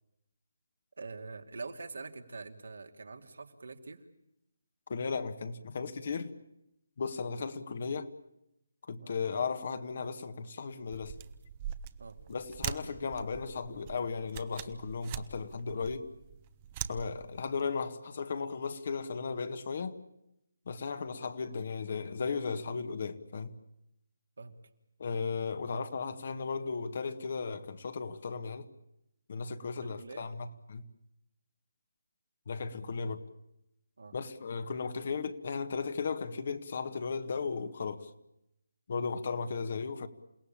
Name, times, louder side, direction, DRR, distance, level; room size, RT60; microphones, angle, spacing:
voice 1, 1.0-4.1 9.0-9.2 12.0-12.2 24.4-24.6 29.8-30.3 34.0-34.2, right 4 dB, 75° right, 2.7 m, -44 dB
voice 2, 4.9-6.3 7.0-8.1 8.9-11.1 12.3-16.1 16.9-20.0 20.7-23.5 25.0-28.7 29.3-30.8 32.5-33.2 34.1-38.1 38.9-40.1, left 5 dB, 50° left, 1.7 m, -36 dB
sound 1, 10.9-17.6, right 9 dB, 25° right, 1.1 m, -43 dB
28.5 x 17.5 x 8.8 m
figure-of-eight pair, 160°, 0 cm